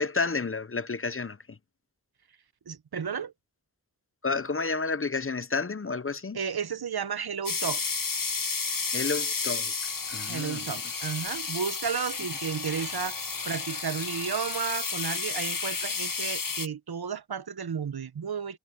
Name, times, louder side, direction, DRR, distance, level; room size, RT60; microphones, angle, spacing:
voice 1, 0.0-1.6 4.2-6.4 8.9-9.7 10.1-10.8, left 4 dB, 35° left, 0.7 m, -31 dB
voice 2, 2.7-3.3 6.3-7.8 10.3-13.2 13.4-18.6, right 7 dB, 75° right, 0.9 m, -33 dB
sound 1, 7.5-16.7, left 5 dB, 60° left, 1.4 m, -32 dB
wide cardioid pair, 60°, 37 cm